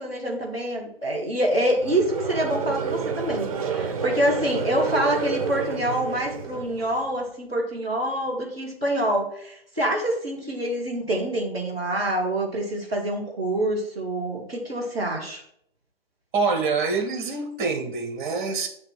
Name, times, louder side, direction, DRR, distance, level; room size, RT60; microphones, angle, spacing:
voice 1, 0.0-15.4, right 1 dB, 5° left, -10 dB, 0.3 m, -26 dB
Conversation / Crowd, 1.8-7.1, right 5 dB, 35° right, 0.6 m, -29 dB
voice 2, 16.3-18.7, right 4 dB, 20° right, 4 dB, 1.0 m, -25 dB
7.2 x 3.2 x 6.0 m, 0.70 s
figure-of-eight pair, 135°, 30 cm